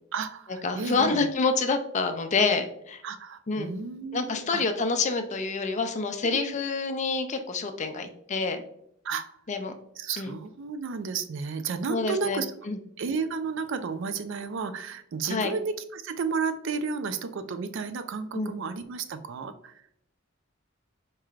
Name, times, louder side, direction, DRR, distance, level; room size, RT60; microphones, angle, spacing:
voice 1, 0.1-1.3 3.0-4.6 6.2-6.6 9.0-9.4 10.0-12.5 13.0-19.8, right 5 dB, 65° right, 11 dB, 0.4 m, -32 dB
voice 2, 0.6-3.0 3.5-3.7 4.1-8.6 9.5-9.7 10.2-10.3 11.9-12.4 12.7-12.8 15.3-15.5 18.3-18.5, left 4 dB, 35° left, 7 dB, 0.4 m, -27 dB
4.6 x 3.1 x 2.4 m, 0.73 s
head